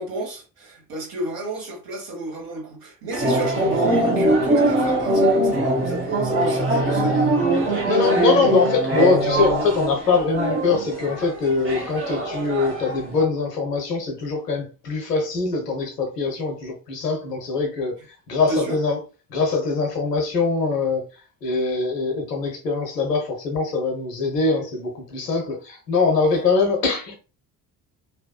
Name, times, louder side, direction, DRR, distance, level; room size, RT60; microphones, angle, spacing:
voice 1, 0.0-7.3 18.5-18.8, right 2 dB, 50° right, 1.3 m, -30 dB
sound 1, 3.1-13.2, right 1 dB, 25° right, 0.9 m, -22 dB
voice 2, 7.9-18.0 18.3-19.0 19.3-21.0 21.4-27.2, left 4 dB, 80° left, 0.7 m, -23 dB
2.7 x 2.2 x 2.2 m
figure-of-eight pair, 50°, 47 cm